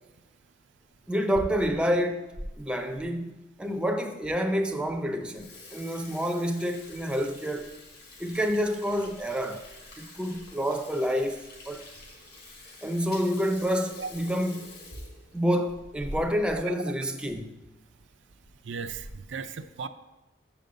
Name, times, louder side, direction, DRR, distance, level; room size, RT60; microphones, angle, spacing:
Water tap faucet / Sink (filling or washing), 1.0-2.5 3.0-3.1 3.8-3.9 4.2-4.3 4.7-4.9 5.2-16.6 16.9-17.0 17.3-17.4 18.2-18.5 18.9-19.3, left 1 dB, 55° left, 2.1 m, -45 dB
voice 1, 1.1-7.7 8.2-9.6 10.0-11.8 12.8-14.7 15.3-17.5, equal, 5° right, 0.5 m, -28 dB
voice 2, 18.7-19.9, right 5 dB, 80° right, 0.5 m, -36 dB
7.4 x 5.2 x 6.6 m
head